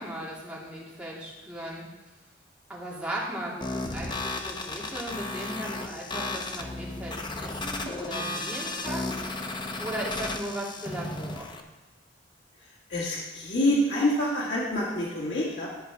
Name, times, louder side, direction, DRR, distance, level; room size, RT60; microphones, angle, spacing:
voice 1, 0.0-1.8 2.7-9.2 9.8-11.6, right 1 dB, 5° right, -5 dB, 2.5 m, -37 dB
sound 1, 3.6-11.6, left 2 dB, 25° left, 0.7 m, -34 dB
voice 2, 12.9-15.7, left 1 dB, 85° left, -6 dB, 2.0 m, -26 dB
12.5 x 5.6 x 4.8 m, 1.1 s
head